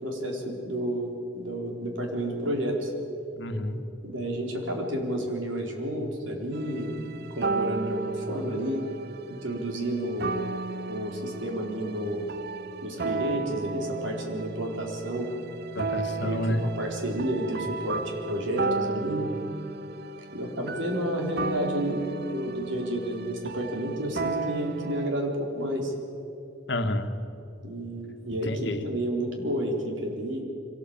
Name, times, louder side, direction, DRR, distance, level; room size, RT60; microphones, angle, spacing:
voice 1, 0.0-2.9 4.0-7.0 7.4-8.8 9.3-10.3 10.9-12.2 12.8-15.3 16.1-19.3 20.3-25.9 27.6-30.4, right 1 dB, 80° right, 1 dB, 4.1 m, -31 dB
voice 2, 3.4-3.8 15.7-16.7 26.7-27.1 28.4-28.8, left 1 dB, 60° left, 7 dB, 1.5 m, -29 dB
sound 1, 6.5-25.1, right 4 dB, 55° right, 0.7 m, -35 dB
24.0 x 18.5 x 8.9 m, 2.9 s
head